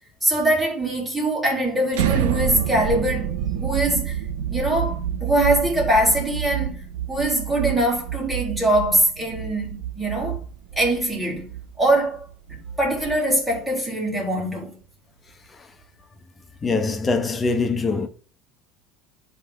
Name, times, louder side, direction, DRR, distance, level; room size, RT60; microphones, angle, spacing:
voice 1, 0.2-4.2 4.5-6.8 7.1-10.4 10.8-11.5 11.8-12.2 12.5-14.8, right 1 dB, ahead, 3.8 m, -22 dB
sound 1, 1.9-13.8, right 10 dB, 90° right, 0.5 m, -28 dB
voice 2, 16.6-18.1, left 3 dB, 20° left, 1.1 m, -23 dB
11.0 x 3.8 x 3.5 m
supercardioid pair, 110°, 0 cm